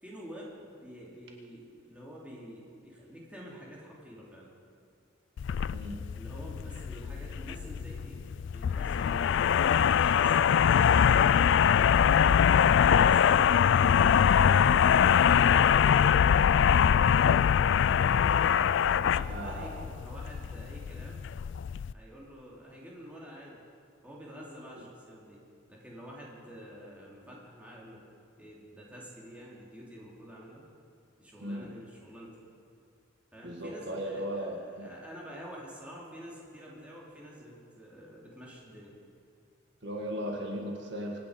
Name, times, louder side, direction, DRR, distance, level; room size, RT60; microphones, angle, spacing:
voice 1, 0.0-4.5 6.1-11.3 12.1-14.6 14.9-16.7 17.2-18.4 19.0-21.2 21.9-23.6 24.0-28.0 28.4-30.6 31.2-32.3 33.3-34.5 34.8-39.0, equal, 5° right, -5 dB, 3.2 m, -48 dB
sound 1, 5.4-21.9, left 8 dB, 65° left, 0.3 m, -23 dB
voice 2, 12.2-12.7 19.3-19.9 31.4-31.7 33.4-34.9 39.8-41.2, equal, 60° right, 1 dB, 1.8 m, -37 dB
25.0 x 9.7 x 5.2 m, 2.5 s
head